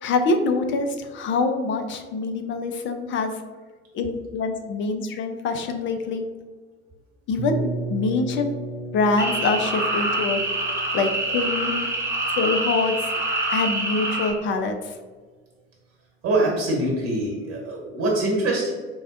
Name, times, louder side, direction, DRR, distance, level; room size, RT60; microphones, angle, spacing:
voice 1, 0.0-3.4 3.9-6.3 7.3-8.5 8.9-10.4 10.7-11.9 12.4-13.0 13.5-14.9, left 3 dB, 35° left, 6 dB, 0.5 m, -25 dB
sound 1, 7.4-13.2, right 3 dB, 85° right, 0.5 m, -35 dB
sound 2, 9.2-14.3, right 2 dB, 5° right, 0.8 m, -26 dB
voice 2, 16.2-18.7, right 2 dB, 50° right, -2 dB, 1.1 m, -24 dB
4.6 x 2.1 x 2.5 m, 1.4 s
figure-of-eight pair, 55°, 34 cm